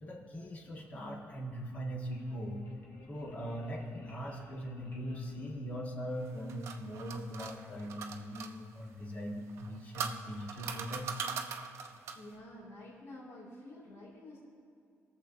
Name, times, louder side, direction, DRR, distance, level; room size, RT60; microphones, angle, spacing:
voice 1, 0.0-2.6 3.1-11.3, equal, 30° left, -1 dB, 1.6 m, -40 dB
sound 1, 1.6-6.3, left 2 dB, 50° left, 1.3 m, -58 dB
sound 2, 6.2-8.5 9.5-12.3, right 6 dB, 75° right, 0.7 m, -41 dB
voice 2, 12.1-14.4, left 1 dB, 70° left, -6 dB, 2.4 m, -49 dB
21.5 x 7.2 x 2.7 m, 2.5 s
cardioid pair, 150°, 5 cm